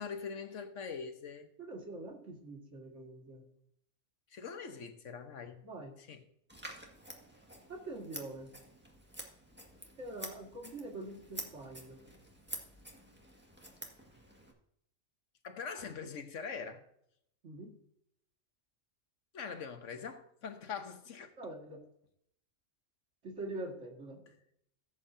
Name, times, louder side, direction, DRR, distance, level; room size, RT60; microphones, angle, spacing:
voice 1, 0.0-1.5 4.3-5.6 6.0-6.2 15.4-16.8 19.3-21.3, left 6 dB, 90° left, 1.4 m, -43 dB
voice 2, 1.6-3.5 5.6-5.9 7.7-8.5 10.0-12.0 17.4-17.7 21.4-21.8 23.2-24.2, right 2 dB, 80° right, 2.4 m, -44 dB
Scissors, 6.5-14.5, right 1 dB, 10° right, 1.8 m, -49 dB
16.0 x 8.2 x 2.8 m
omnidirectional pair, 1.2 m